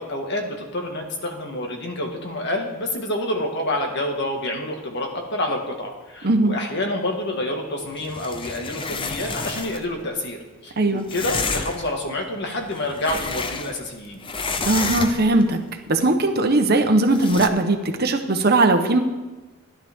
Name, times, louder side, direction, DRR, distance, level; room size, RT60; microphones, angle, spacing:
voice 1, 0.0-10.4 10.6-14.2, left 1 dB, 55° left, 2 dB, 1.8 m, -28 dB
voice 2, 6.2-6.6 10.8-11.1 14.7-15.6 15.9-19.0, right 2 dB, 50° right, 5 dB, 1.1 m, -19 dB
sound 1, 8.0-9.9 11.1-11.9 12.6-13.9 14.2-15.4 17.1-17.5, left 4 dB, 25° left, 0.6 m, -30 dB
14.5 x 11.0 x 3.6 m, 1.2 s
head